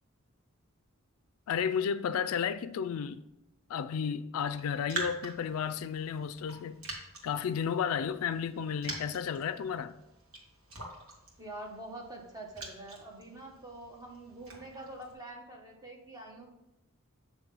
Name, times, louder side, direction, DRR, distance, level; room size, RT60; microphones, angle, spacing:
voice 1, 1.5-3.2 3.7-6.8 7.2-10.0, left 7 dB, 80° left, 0.3 m, -32 dB
Raindrop, 4.5-15.1, right 2 dB, 85° right, 1.7 m, -45 dB
voice 2, 11.4-16.5, right 2 dB, 15° right, 1.0 m, -45 dB
7.3 x 3.1 x 5.3 m
head